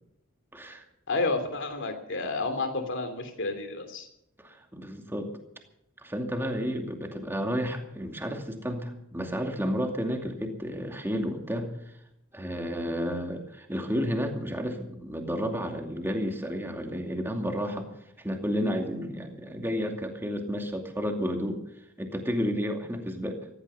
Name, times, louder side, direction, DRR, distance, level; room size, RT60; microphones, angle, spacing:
voice 1, 0.5-0.8 4.4-5.3 6.0-11.7 12.3-17.9 18.2-21.6 22.0-23.4, equal, 10° right, 3 dB, 2.5 m, -31 dB
voice 2, 1.1-4.1, left 3 dB, 60° left, 7 dB, 3.0 m, -30 dB
15.5 x 15.0 x 5.7 m, 0.79 s
head